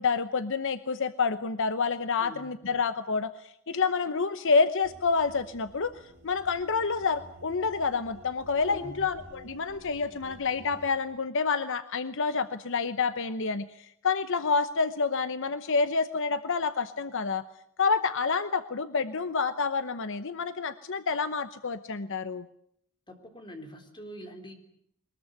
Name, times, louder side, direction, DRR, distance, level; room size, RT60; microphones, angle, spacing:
voice 1, 0.0-17.4 17.8-22.5, left 4 dB, 60° left, 12 dB, 0.9 m, -28 dB
voice 2, 2.2-2.6 8.6-9.1 23.1-24.5, equal, 20° left, 5 dB, 3.9 m, -44 dB
sound 1, 4.8-10.9, right 1 dB, 45° right, 5.7 m, -51 dB
22.0 x 20.5 x 9.7 m, 0.71 s
head